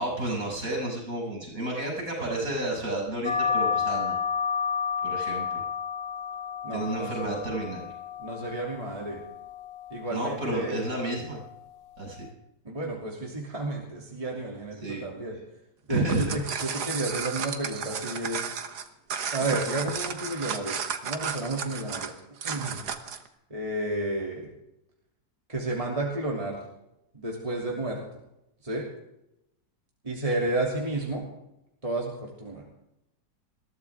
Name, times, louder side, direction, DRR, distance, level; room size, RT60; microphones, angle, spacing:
voice 1, 0.0-4.1 5.0-5.6 6.7-7.9 10.1-11.4 12.0-12.3 14.8-15.0 15.9-16.4, right 1 dB, 55° right, -1 dB, 7.0 m, -31 dB
sound 1, 3.2-12.3, left 6 dB, 30° left, 1.5 m, -32 dB
voice 2, 6.6-7.4 8.2-9.2 9.9-10.8 12.6-15.4 15.9-18.4 19.3-20.8 21.0-22.1 22.4-22.8 23.5-24.5 25.5-26.6 27.1-28.0 28.6-28.9 30.0-31.2 31.8-32.6, right 2 dB, 20° right, -2 dB, 2.9 m, -31 dB
sound 2, 15.9-23.3, right 7 dB, 75° right, 1.8 m, -33 dB
21.5 x 15.5 x 3.6 m, 0.83 s
omnidirectional pair, 1.7 m